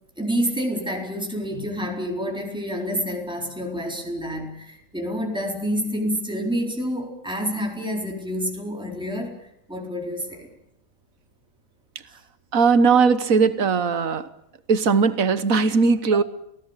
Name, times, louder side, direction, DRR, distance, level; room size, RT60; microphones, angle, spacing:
voice 1, 0.2-10.5, equal, 5° right, 1 dB, 4.2 m, -28 dB
voice 2, 12.5-14.3 14.7-16.2, right 5 dB, 80° right, 14 dB, 1.7 m, -19 dB
28.0 x 17.5 x 8.3 m, 0.78 s
omnidirectional pair, 1.4 m